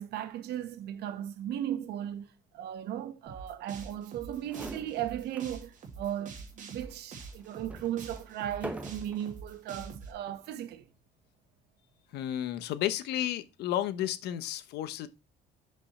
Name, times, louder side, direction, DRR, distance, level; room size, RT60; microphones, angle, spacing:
voice 1, 0.0-10.9, right 11 dB, 75° right, 1.2 m, -37 dB
sound 1, 3.3-10.1, right 4 dB, 50° right, 2.3 m, -46 dB
sound 2, 4.1-4.2 4.4-5.6 6.0-6.1 6.8-9.4 10.1-10.5, right 1 dB, 10° right, 1.3 m, -45 dB
voice 2, 12.1-15.1, left 12 dB, 80° left, 0.9 m, -32 dB
6.4 x 5.3 x 4.2 m
cardioid pair, 110°, 17 cm